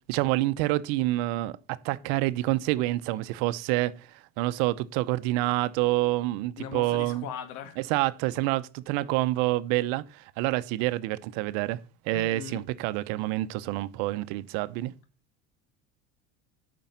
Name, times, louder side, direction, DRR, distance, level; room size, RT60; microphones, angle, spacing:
voice 1, 0.1-4.1 4.4-7.3 7.9-11.8 12.1-14.9, right 17 dB, 75° right, 0.8 m, -27 dB
voice 2, 6.6-7.8 12.1-12.6, left 8 dB, 70° left, 2.0 m, -39 dB
8.9 x 6.2 x 5.7 m
supercardioid pair, 100°, 34 cm